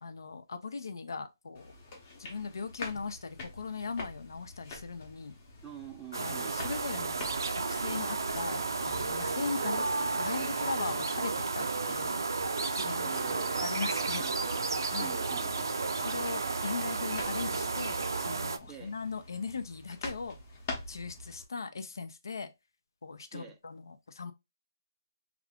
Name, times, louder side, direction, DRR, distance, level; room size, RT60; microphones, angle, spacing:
voice 1, 0.0-1.7 2.2-5.4 6.1-7.1 7.7-9.8 10.2-12.2 12.7-13.2 13.6-14.2 14.9-15.1 16.0-18.0 18.3-20.4 20.9-22.5 23.0-24.3, left 4 dB, 75° left, 0.6 m, -39 dB
sound 1, 1.5-21.4, left 2 dB, 25° left, 0.8 m, -47 dB
voice 2, 5.6-6.9 9.6-9.8 13.0-13.7 14.2-14.7 15.0-16.2 18.6-18.9 23.3-23.6, right 8 dB, 5° right, 0.3 m, -47 dB
sound 2, 6.1-18.6, right 4 dB, 85° right, 0.5 m, -32 dB
3.4 x 2.5 x 3.5 m
hypercardioid pair, 175°, 2 cm